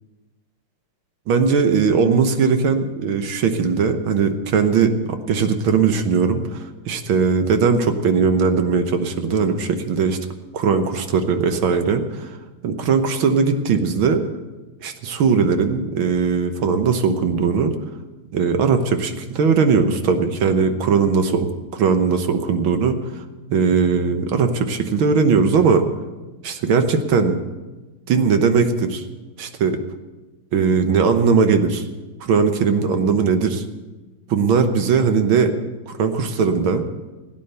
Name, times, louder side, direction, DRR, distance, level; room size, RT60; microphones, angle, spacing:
voice 1, 1.3-10.2 10.5-12.3 12.6-14.2 14.8-17.7 18.3-23.0 23.5-25.9 26.4-27.4 28.1-29.0 29.4-29.8 30.5-31.8 32.2-33.6 34.3-35.5 35.9-36.8, right 5 dB, 75° right, 7 dB, 1.9 m, -19 dB
17.0 x 9.2 x 6.7 m, 1.2 s
omnidirectional pair, 2.3 m